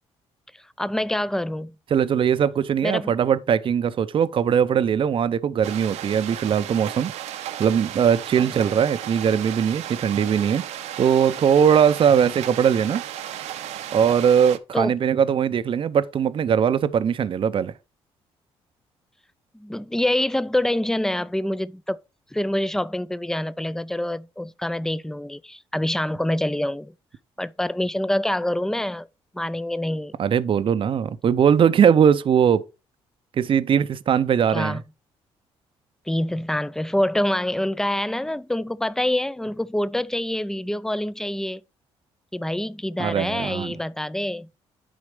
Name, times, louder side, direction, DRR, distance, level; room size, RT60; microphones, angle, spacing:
voice 1, 0.8-1.8 2.8-3.1 14.7-14.9 19.5-22.0 22.3-26.9 27.4-29.1 29.3-30.1 34.5-34.8 36.1-41.6 42.3-44.5, left 1 dB, 5° left, 0.5 m, -26 dB
voice 2, 1.9-7.1 7.6-10.6 11.0-13.0 13.9-17.7 30.2-32.6 33.4-34.8 43.0-43.7, right 8 dB, 50° right, 0.6 m, -20 dB
sound 1, 5.6-14.6, right 11 dB, 85° right, 0.8 m, -35 dB
9.9 x 4.1 x 5.0 m
cardioid pair, 80°, 11 cm